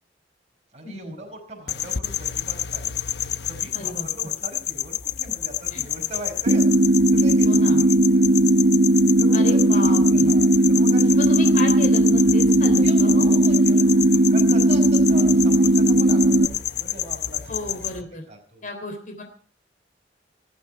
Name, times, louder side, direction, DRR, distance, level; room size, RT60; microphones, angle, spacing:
voice 1, 0.7-3.0 3.5-8.2 9.2-11.4 12.8-17.8 18.3-18.7, right 1 dB, 40° right, 1 dB, 5.2 m, -40 dB
sound 1, 1.7-18.0, left 11 dB, 65° left, 0.9 m, -29 dB
voice 2, 3.7-4.1 5.7-5.8 7.5-7.8 9.3-10.3 11.2-13.3 17.5-18.3 18.6-19.2, left 2 dB, 45° left, 4 dB, 3.5 m, -32 dB
sound 2, 6.5-16.5, right 1 dB, 60° right, 1.0 m, -17 dB
20.0 x 14.5 x 4.7 m, 0.42 s
head